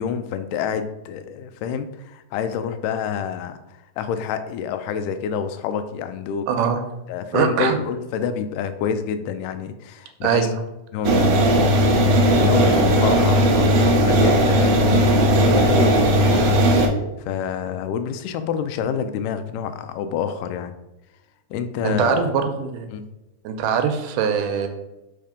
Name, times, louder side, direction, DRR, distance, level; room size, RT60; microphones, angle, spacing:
voice 1, 0.0-3.6 4.0-6.5 7.1-10.5 10.9-16.5 17.2-20.7 21.5-22.3 22.9-23.0, left 7 dB, 85° left, 10 dB, 2.1 m, -27 dB
voice 2, 6.5-6.8 7.3-7.8 10.2-10.5 21.8-22.9 23.4-24.7, right 7 dB, 90° right, 6 dB, 2.2 m, -22 dB
sound 1, 11.0-16.9, equal, 70° right, 1.6 m, -17 dB
5.5 x 3.3 x 5.0 m, 0.98 s
omnidirectional pair, 3.7 m